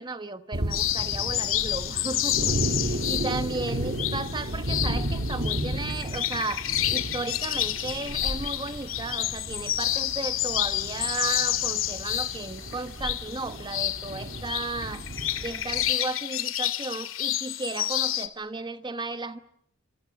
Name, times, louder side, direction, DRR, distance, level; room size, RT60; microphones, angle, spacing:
voice 1, 0.0-15.1 15.4-19.4, right 3 dB, 20° right, 1.1 m, -35 dB
sound 1, 0.5-15.9, right 1 dB, 55° right, 2.5 m, -34 dB
sound 2, 0.7-18.3, left 13 dB, 75° left, 2.3 m, -29 dB
27.0 x 26.5 x 7.0 m
head